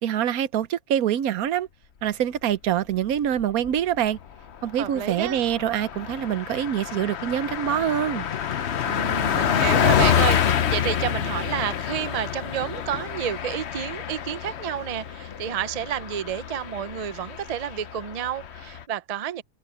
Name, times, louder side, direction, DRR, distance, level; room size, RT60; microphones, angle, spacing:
voice 1, 0.0-1.7 2.0-4.2 4.6-8.3, right 10 dB, 80° right, 1.2 m, -25 dB
Car passing by, 3.2-3.8 4.1-4.3 4.6-18.8, left 9 dB, 55° left, 1.0 m, -27 dB
voice 2, 4.8-5.4 8.8-19.4, right 10 dB, 60° right, 0.4 m, -30 dB
omnidirectional pair, 1.5 m